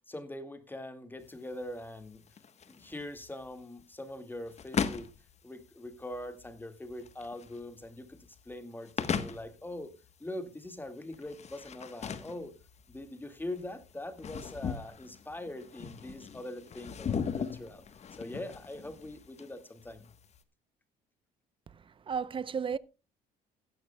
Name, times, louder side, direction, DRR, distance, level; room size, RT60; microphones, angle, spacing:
voice 1, 0.1-2.2 2.7-5.1 5.4-8.2 8.5-9.9 10.2-12.5 12.9-17.8 18.2-20.1, left 1 dB, 10° left, 1.9 m, -42 dB
sound 1, 1.2-20.4, left 6 dB, 40° left, 1.2 m, -39 dB
voice 2, 21.7-22.8, right 6 dB, 30° right, 0.6 m, -34 dB
15.5 x 12.5 x 2.2 m
cardioid pair, 110°, 17 cm